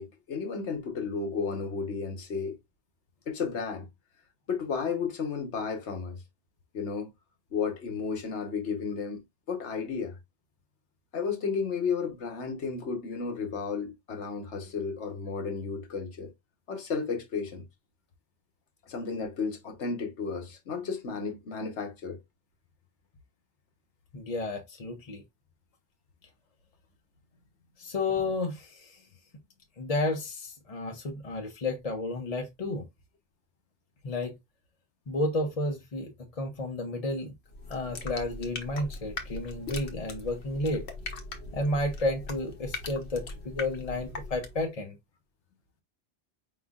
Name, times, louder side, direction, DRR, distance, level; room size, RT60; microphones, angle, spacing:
voice 1, 0.0-2.6 3.3-3.9 4.5-6.2 6.7-7.1 7.5-9.2 9.5-10.2 11.1-16.3 16.7-17.7 18.9-22.2, left 5 dB, 90° left, 1.4 m, -33 dB
voice 2, 24.1-25.2 27.8-29.0 29.8-32.9 34.0-34.4 35.1-37.3 37.7-40.9 41.5-45.0, left 2 dB, 40° left, 0.7 m, -32 dB
sound 1, 37.5-44.7, left 3 dB, 70° left, 1.2 m, -40 dB
4.9 x 3.6 x 2.4 m
omnidirectional pair, 1.1 m